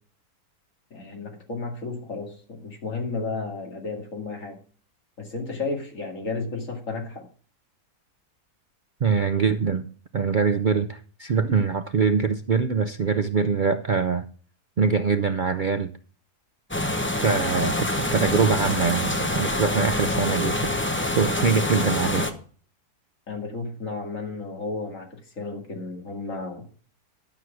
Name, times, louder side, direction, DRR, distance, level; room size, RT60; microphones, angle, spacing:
voice 1, 0.9-4.6 5.2-7.3 23.3-26.6, left 3 dB, 55° left, 2.7 m, -33 dB
voice 2, 9.0-9.9 10.1-14.2 14.8-15.9 17.2-20.7 21.0-22.3, right 5 dB, 85° right, 0.4 m, -23 dB
sound 1, 16.7-22.3, left 1 dB, 10° left, 0.7 m, -26 dB
12.0 x 6.3 x 5.9 m
omnidirectional pair, 1.6 m